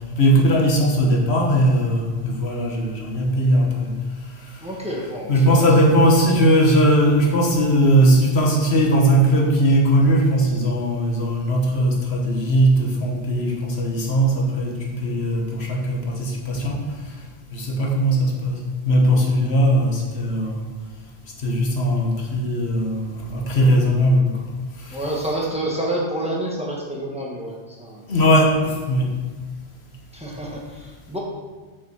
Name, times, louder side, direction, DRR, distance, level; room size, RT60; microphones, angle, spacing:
voice 1, 0.1-4.0 5.3-16.8 17.5-20.6 21.4-24.3 28.1-29.1, equal, 85° left, 0 dB, 1.6 m, -19 dB
voice 2, 4.6-5.7 24.9-28.0 30.1-31.2, right 1 dB, 5° right, -3 dB, 1.5 m, -28 dB
6.9 x 6.3 x 4.9 m, 1.4 s
omnidirectional pair, 1.1 m